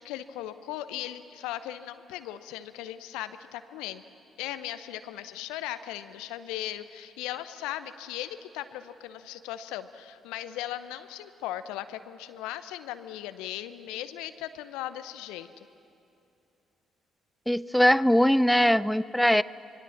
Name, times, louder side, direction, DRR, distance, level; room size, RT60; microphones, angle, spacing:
voice 1, 0.0-4.0 4.4-15.5, left 13 dB, 70° left, 12 dB, 0.8 m, -38 dB
voice 2, 17.5-19.4, equal, 5° left, 18 dB, 0.5 m, -21 dB
26.0 x 23.0 x 7.2 m, 2.7 s
figure-of-eight pair, 45°, 0 cm